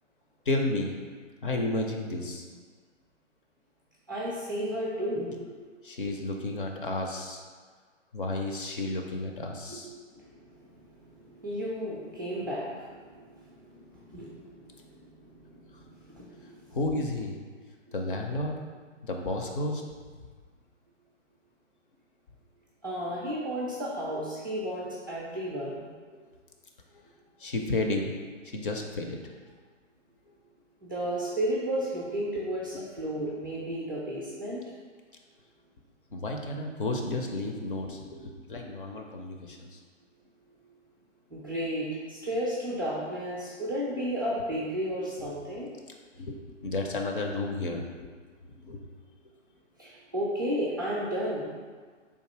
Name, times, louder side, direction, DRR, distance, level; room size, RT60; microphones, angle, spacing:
voice 1, 0.5-0.9 1.4-2.4 5.8-7.4 8.1-9.9 16.7-17.4 17.9-18.5 19.0-19.8 26.1-26.2 26.9-27.0 27.4-28.1 28.4-29.2 36.1-39.8 45.2-45.3 46.2-46.4 46.6-47.8 48.6-48.8, left 2 dB, 45° left, 2 dB, 0.5 m, -32 dB
voice 2, 4.1-5.7 9.7-9.8 10.1-10.4 11.2-16.7 22.8-25.8 30.8-34.6 41.3-45.7 49.8-51.6, equal, 20° right, -6 dB, 0.4 m, -33 dB
3.5 x 2.7 x 4.5 m, 1.5 s
figure-of-eight pair, 130°, 37 cm